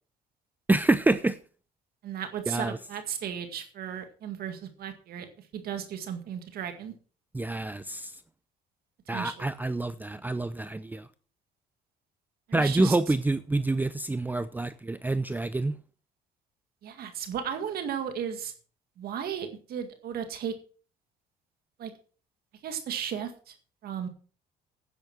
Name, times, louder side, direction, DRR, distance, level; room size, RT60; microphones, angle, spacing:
voice 1, 0.7-1.4 2.5-2.8 7.3-8.1 9.1-11.1 12.5-15.8, right 2 dB, 10° right, 0.5 m, -27 dB
voice 2, 2.0-6.9 9.1-9.5 12.5-13.0 16.8-18.5 19.0-20.5 21.8-21.9 22.6-23.5 23.8-24.1, right 8 dB, 65° right, 2.0 m, -35 dB
10.5 x 9.4 x 6.0 m
cardioid pair, 110°, 17 cm